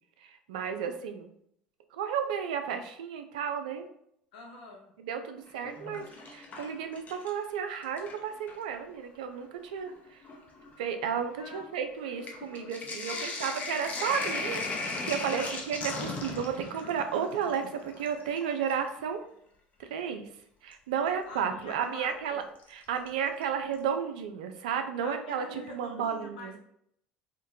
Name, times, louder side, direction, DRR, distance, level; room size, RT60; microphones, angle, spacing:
voice 1, 0.2-1.3 1.9-3.9 5.0-10.2 10.8-19.2 19.8-20.2 20.6-22.4 22.7-26.6, right 7 dB, 80° right, 7 dB, 0.4 m, -33 dB
voice 2, 4.3-4.9 11.4-11.8 13.1-13.6 13.9-14.2 15.2-15.6 21.2-22.4 25.0-26.6, left 2 dB, 80° left, 1 dB, 0.8 m, -46 dB
Sink (filling or washing), 5.5-7.5 7.8-8.7 9.5-9.6 9.8-18.9 20.7-20.8 22.6-23.1 23.4-23.5 23.7-23.8, left 3 dB, 40° left, 0.7 m, -38 dB
3.7 x 2.1 x 2.7 m, 0.72 s
hypercardioid pair, 70°, 4 cm